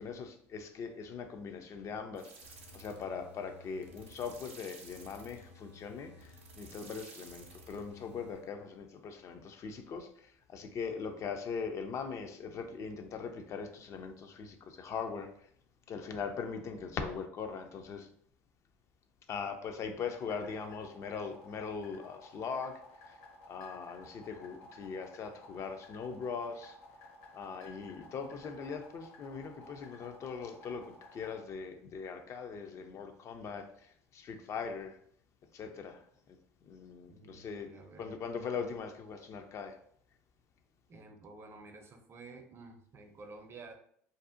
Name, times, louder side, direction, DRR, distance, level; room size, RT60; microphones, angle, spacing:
voice 1, 0.0-2.3 2.7-15.5 15.9-18.1 19.3-23.2 23.5-26.8 27.3-35.0 35.5-36.4 36.6-39.8, left 5 dB, 45° left, 0.3 m, -41 dB
sound 1, 2.1-8.5, right 1 dB, 90° right, 0.5 m, -54 dB
sound 2, 20.0-31.4, left 2 dB, 60° left, 0.8 m, -55 dB
voice 2, 37.1-38.2 40.9-43.7, right 3 dB, 35° right, 0.5 m, -51 dB
2.6 x 2.0 x 2.4 m
hypercardioid pair, 75°, 7 cm